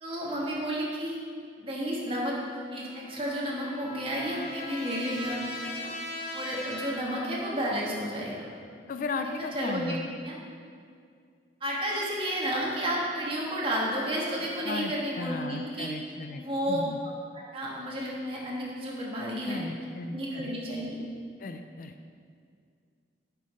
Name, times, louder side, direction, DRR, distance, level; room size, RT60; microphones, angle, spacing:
voice 1, 0.0-1.2 1.6-5.9 6.3-8.5 9.1-9.3 9.5-9.9 10.3-10.4 11.6-15.9 16.3-16.8 17.5-19.6 20.1-21.0, equal, 30° right, -4 dB, 1.5 m, -32 dB
Trumpet, 2.7-7.9, left 1 dB, 80° left, 1.9 m, -40 dB
voice 2, 8.9-10.1 14.6-17.0 19.4-20.5 21.4-22.1, left 3 dB, 50° left, 7 dB, 0.4 m, -36 dB
7.4 x 5.6 x 5.0 m, 2.2 s
head